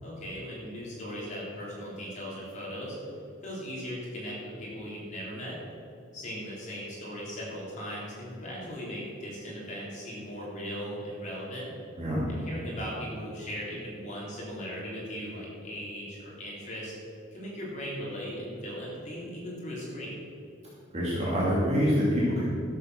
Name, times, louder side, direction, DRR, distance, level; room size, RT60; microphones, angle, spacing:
voice 1, 0.0-3.0 3.4-5.6 6.1-11.7 12.3-16.9 17.3-20.1, equal, 35° left, -6 dB, 3.4 m, -38 dB
voice 2, 20.9-22.4, equal, 35° right, -7 dB, 2.4 m, -25 dB
13.0 x 7.7 x 6.2 m, 2.6 s
head